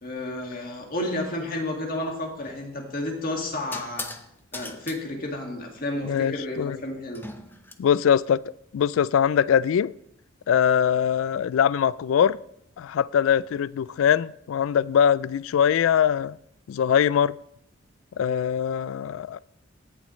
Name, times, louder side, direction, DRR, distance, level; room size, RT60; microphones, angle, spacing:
voice 1, 0.0-4.1 4.5-7.3, left 1 dB, 45° left, 2.0 m, -31 dB
sound 1, 2.4-2.7 3.7-4.3 4.5-5.0 7.2-7.7, left 3 dB, 10° left, 0.6 m, -38 dB
voice 2, 6.0-6.8 7.8-8.4 8.7-9.9 10.5-12.4 12.8-16.4 16.7-17.3 18.2-19.4, left 8 dB, 80° left, 0.3 m, -22 dB
17.0 x 7.3 x 3.1 m
head